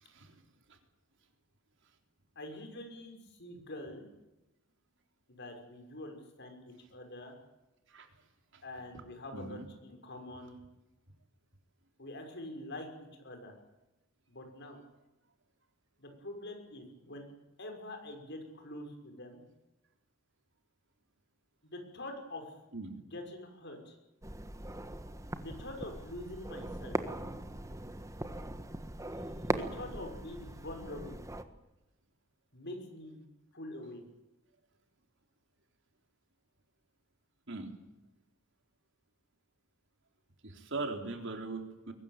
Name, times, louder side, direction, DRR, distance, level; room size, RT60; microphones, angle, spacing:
voice 1, 0.0-0.3 0.7-0.8 7.9-8.1 8.5-8.6 9.3-9.7 22.7-22.9 37.5-37.7 40.4-41.9, right 3 dB, 60° right, 4 dB, 3.8 m, -40 dB
voice 2, 2.4-4.1 5.3-7.4 8.6-10.6 12.0-12.9 13.2-13.5 14.3-14.8 16.0-17.3 17.6-19.4 21.6-22.5 23.1-24.0 25.3-27.0 29.5-31.2 32.5-33.2 33.5-34.0, left 1 dB, 55° left, 4 dB, 6.0 m, -45 dB
sound 1, 24.2-31.4, right 1 dB, 15° right, 1.5 m, -40 dB
22.5 x 19.5 x 9.0 m, 0.98 s
head